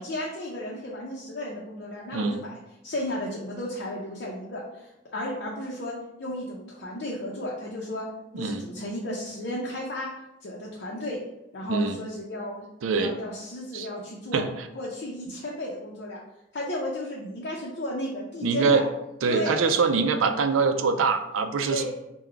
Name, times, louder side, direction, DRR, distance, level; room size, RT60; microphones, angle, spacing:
voice 1, 0.0-2.5 2.8-8.1 8.4-10.1 10.4-11.2 11.5-12.7 12.9-14.4 14.7-16.2 16.5-18.8 19.3-19.8 21.6-21.8, left 1 dB, 55° left, -4 dB, 0.6 m, -34 dB
voice 2, 2.1-2.5 8.3-8.6 11.7-12.0 12.8-13.1 13.7-13.9 14.3-14.5 18.4-18.8 19.2-21.8, right 4 dB, 85° right, 8 dB, 0.4 m, -24 dB
3.8 x 2.2 x 4.4 m, 0.89 s
head